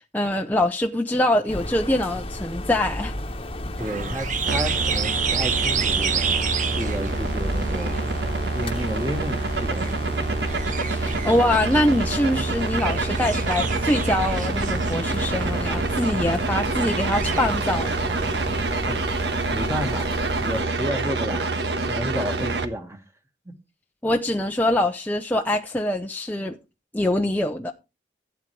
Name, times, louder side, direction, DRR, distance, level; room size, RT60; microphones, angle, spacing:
voice 1, 0.1-3.1 10.9-17.9 24.0-26.6 26.9-27.7, left 1 dB, 10° left, 0.8 m, -24 dB
sound 1, 1.5-20.6, left 1 dB, 30° left, 1.3 m, -33 dB
voice 2, 3.8-6.3 6.8-8.0 8.5-10.0 18.9-19.1 19.5-21.5 21.8-23.0 23.5-23.6, equal, 15° right, 1.8 m, -31 dB
sound 2, 3.8-18.6, right 5 dB, 45° right, 1.2 m, -31 dB
sound 3, 4.5-22.6, right 3 dB, 70° right, 1.4 m, -27 dB
16.0 x 9.1 x 3.3 m
head